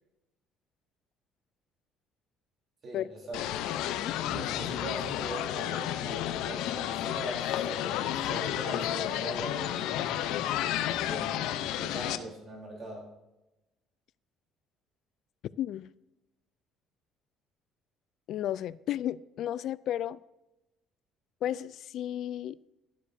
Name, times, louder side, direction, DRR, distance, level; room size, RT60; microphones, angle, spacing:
voice 1, 2.8-3.4 4.3-10.0 11.0-13.1, right 1 dB, 40° right, 3.8 m, -41 dB
sound 1, 3.3-12.2, left 12 dB, 80° left, 0.8 m, -31 dB
voice 2, 15.6-15.9 18.3-20.2 21.4-22.6, left 11 dB, 60° left, 0.4 m, -33 dB
12.0 x 12.0 x 2.8 m
cardioid pair, 130°, 0 cm